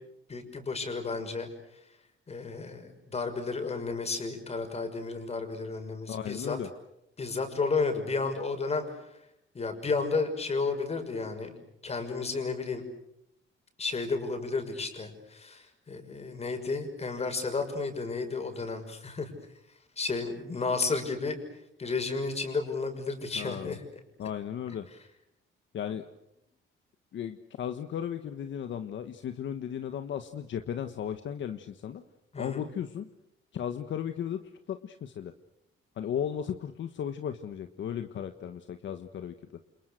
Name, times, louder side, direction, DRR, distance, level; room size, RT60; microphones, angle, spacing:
voice 1, 0.3-1.5 2.3-6.6 7.2-8.8 9.5-12.8 13.8-19.3 20.0-21.4 21.8-23.8 32.3-32.7, left 4 dB, 30° left, 5 dB, 6.1 m, -32 dB
voice 2, 6.1-6.7 23.4-23.8 24.2-24.9 25.7-26.0 27.1-32.0 32.4-33.1 33.5-34.4 34.7-35.3 36.0-39.3, left 9 dB, 60° left, 8 dB, 1.5 m, -35 dB
29.5 x 28.5 x 6.7 m, 0.83 s
cardioid pair, 125°, 21 cm